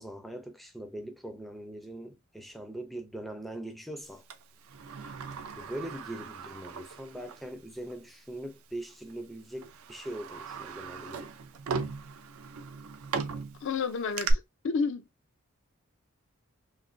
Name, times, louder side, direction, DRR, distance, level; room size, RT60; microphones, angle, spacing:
voice 1, 0.0-4.2 5.6-11.3, right 1 dB, ahead, 0.4 m, -41 dB
Sliding door, 4.3-7.5 7.9-8.0 8.9-9.1 9.6-14.3, right 5 dB, 75° right, 0.4 m, -38 dB
voice 2, 13.6-15.0, left 5 dB, 60° left, 0.4 m, -31 dB
3.1 x 2.1 x 2.5 m
head